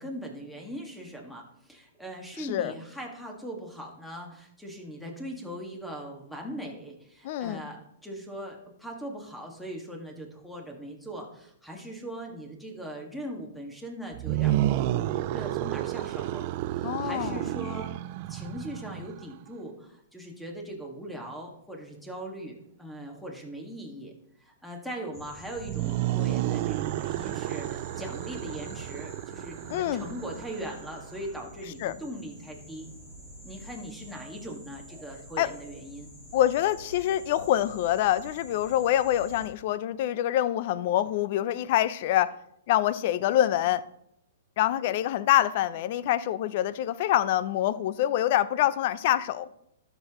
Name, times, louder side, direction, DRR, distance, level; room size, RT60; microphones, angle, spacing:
voice 1, 0.0-16.4 16.8-17.9 18.3-24.1 24.4-32.9 33.4-36.1, right 1 dB, 5° left, 1.7 m, -40 dB
voice 2, 2.4-2.7 7.2-7.6 16.8-17.4 29.7-30.0 31.8-32.0 35.4-35.5 36.3-42.3 42.7-43.8 44.6-49.5, left 12 dB, 50° left, 0.5 m, -25 dB
sound 1, 14.1-19.3 25.5-31.2, right 15 dB, 45° right, 0.3 m, -31 dB
sound 2, 25.1-39.5, equal, 20° left, 3.5 m, -47 dB
12.5 x 6.7 x 3.0 m
hypercardioid pair, 135°, 0 cm